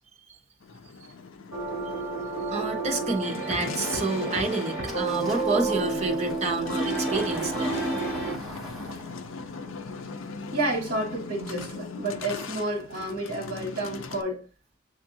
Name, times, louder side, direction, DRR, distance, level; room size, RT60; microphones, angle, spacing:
sound 1, 0.6-14.2, left 4 dB, 80° left, 0.5 m, -40 dB
sound 2, 1.5-8.4, right 2 dB, 60° left, 2.5 m, -30 dB
voice 1, 2.5-7.8, right 3 dB, 30° right, 0.9 m, -29 dB
Engine starting, 4.9-12.2, equal, ahead, 1.0 m, -43 dB
voice 2, 10.5-14.4, right 1 dB, 50° right, 1.3 m, -30 dB
7.6 x 2.6 x 2.7 m
head